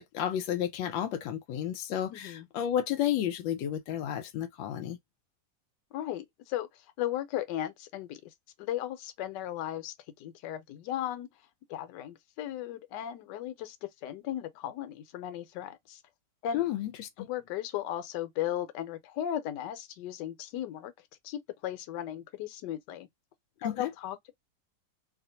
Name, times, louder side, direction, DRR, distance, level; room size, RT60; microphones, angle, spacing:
voice 1, 0.0-5.0 16.5-17.3 23.6-23.9, left 10 dB, 90° left, 1.3 m, -32 dB
voice 2, 2.1-2.5 5.9-8.3 8.6-11.3 11.7-16.0 16.4-16.6 17.2-20.9 21.2-23.1 23.6-24.3, left 11 dB, 70° left, 1.2 m, -36 dB
2.8 x 2.5 x 2.7 m
omnidirectional pair, 2.0 m